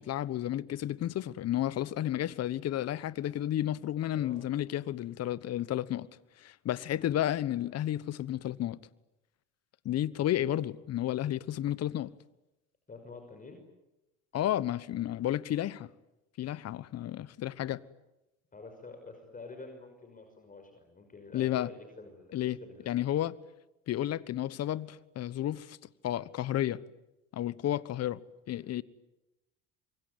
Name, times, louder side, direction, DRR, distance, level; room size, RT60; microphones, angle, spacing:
voice 1, 0.0-6.1 6.4-8.8 9.8-12.1 14.3-15.9 16.4-17.8 21.3-21.7 22.3-22.6 22.9-23.3 23.9-25.8 26.0-26.8 27.3-28.2 28.5-28.8, left 12 dB, 45° left, 1.2 m, -32 dB
voice 2, 12.9-13.6 18.5-23.0, left 3 dB, 25° left, 5.8 m, -48 dB
26.5 x 23.5 x 9.5 m
hypercardioid pair, 80°, 35 cm